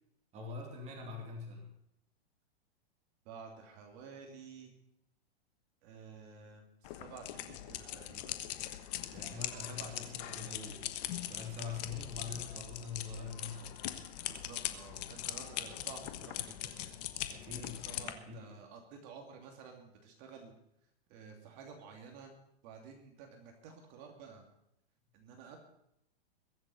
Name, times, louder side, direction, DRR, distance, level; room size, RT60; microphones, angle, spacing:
voice 1, 0.3-1.7 9.1-14.0 17.3-18.5, left 4 dB, 20° right, 0 dB, 2.9 m, -44 dB
voice 2, 3.2-4.7 5.8-8.4 9.1-10.4 14.3-17.0 17.5-20.5 21.1-22.4 22.6-24.4 25.1-25.6, right 5 dB, 40° right, 3 dB, 2.8 m, -52 dB
sound 1, 6.8-18.1, left 13 dB, 40° left, 1.4 m, -41 dB
22.0 x 7.8 x 5.7 m, 0.79 s
supercardioid pair, 155°, 31 cm